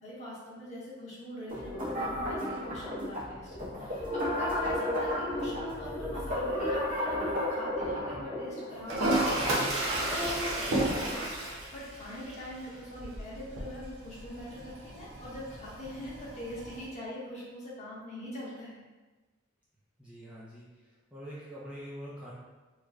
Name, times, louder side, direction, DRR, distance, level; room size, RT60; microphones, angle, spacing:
voice 1, 0.0-9.5 9.8-18.8, left 1 dB, 35° left, -7 dB, 1.0 m, -42 dB
sound 1, 1.5-11.1, left 1 dB, 45° right, 1.0 m, -34 dB
Toilet flush, 8.9-16.9, right 1 dB, 85° right, 0.8 m, -33 dB
voice 2, 20.0-22.3, equal, 5° right, -8 dB, 0.5 m, -45 dB
3.2 x 2.1 x 3.5 m, 1.2 s
head